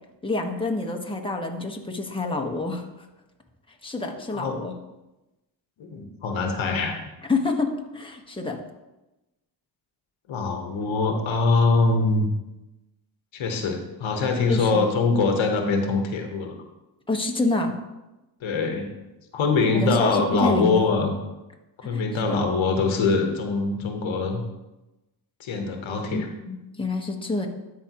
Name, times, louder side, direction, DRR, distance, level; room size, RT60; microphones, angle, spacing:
voice 1, 0.2-2.9 3.8-4.7 7.3-8.6 14.5-14.9 17.1-17.7 19.7-20.9 21.8-22.4 25.9-27.5, left 2 dB, 10° left, 2 dB, 1.3 m, -27 dB
voice 2, 5.8-6.9 10.3-12.3 13.3-16.5 18.4-18.9 19.3-21.1 21.8-24.4 25.4-26.3, left 3 dB, 75° left, 4 dB, 1.2 m, -23 dB
13.0 x 5.1 x 3.0 m, 1.0 s
cardioid pair, 55°, 47 cm